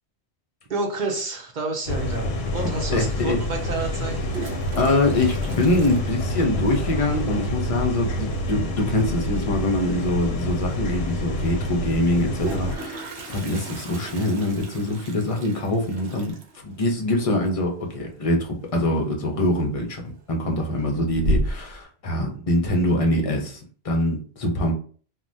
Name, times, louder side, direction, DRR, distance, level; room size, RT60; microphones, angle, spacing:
voice 1, 0.7-4.2, right 3 dB, 55° right, 0.6 m, -29 dB
sound 1, 1.9-12.8, left 1 dB, 70° left, 0.8 m, -28 dB
Toilet flush, 2.7-2.8 4.0-6.8 7.1-7.2 7.4-7.5 7.8-8.2 9.9-10.0 10.4-10.5 12.0-18.7 19.0-19.4 19.9-20.4 20.8-21.8, right 1 dB, 75° right, 0.9 m, -33 dB
voice 2, 2.9-3.4 4.8-16.3 16.6-20.0 20.3-24.7, left 1 dB, 40° left, 0.5 m, -24 dB
3.2 x 2.1 x 2.6 m
omnidirectional pair, 1.1 m